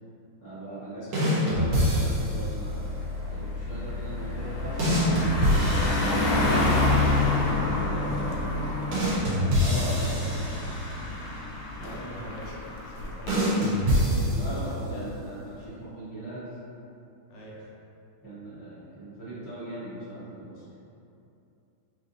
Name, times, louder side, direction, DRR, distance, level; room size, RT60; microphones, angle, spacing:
voice 1, 0.4-5.5 6.3-8.4 9.4-10.4 11.8-12.0 14.2-16.5 18.2-20.6, right 1 dB, 15° left, -12 dB, 0.6 m, -39 dB
voice 2, 1.1-1.4 8.9-9.3 9.8-10.2 10.5-10.6 11.7-12.5 12.8-13.4 13.9-15.2 17.3-17.7, equal, 70° left, -5 dB, 1.2 m, -43 dB
sound 1, 1.1-2.5 4.8-6.8 8.9-11.1 13.3-14.9, equal, 90° right, 1.9 m, -25 dB
sound 2, 1.5-8.7, left 3 dB, 70° right, 1.4 m, -35 dB
Car passing by, 1.7-2.0 2.4-13.3, left 2 dB, 85° left, 1.5 m, -28 dB
4.7 x 2.7 x 2.7 m, 2.8 s
omnidirectional pair, 2.3 m